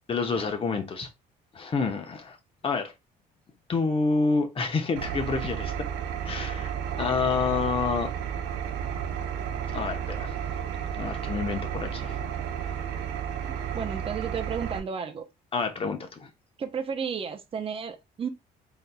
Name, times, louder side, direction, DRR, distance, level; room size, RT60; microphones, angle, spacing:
voice 1, 0.1-1.1 1.5-2.4 2.6-2.9 3.7-5.7 6.2-8.1 9.7-10.3 10.8-12.2 15.5-16.3, left 4 dB, 35° left, 1.0 m, -28 dB
Engine, 5.0-14.8, right 8 dB, 85° right, 0.7 m, -32 dB
voice 2, 13.7-15.2 16.6-18.3, right 6 dB, 35° right, 0.7 m, -32 dB
4.1 x 4.0 x 2.3 m
cardioid pair, 110°, 17 cm